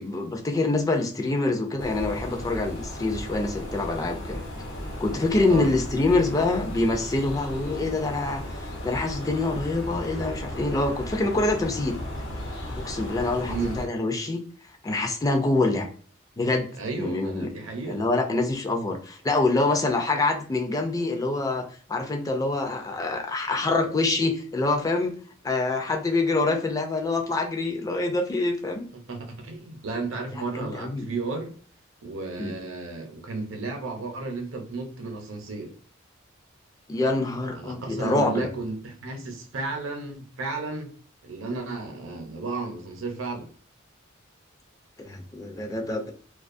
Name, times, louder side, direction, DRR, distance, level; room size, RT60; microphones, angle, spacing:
voice 1, 0.0-4.4 5.0-12.0 12.8-14.4 14.8-15.9 16.4-16.7 17.0-17.5 17.9-25.1 25.4-28.8 30.5-31.1 32.4-32.5 36.9-38.5 45.0-46.1, left 2 dB, 15° left, 3 dB, 0.3 m, -25 dB
sound 1, 1.8-13.9, left 1 dB, 85° left, 0.9 m, -35 dB
voice 2, 13.5-13.8 16.8-18.0 29.1-31.5 32.0-35.7 37.5-40.9 41.2-43.5, right 3 dB, 70° right, 3 dB, 0.7 m, -33 dB
2.3 x 2.3 x 2.5 m, 0.43 s
head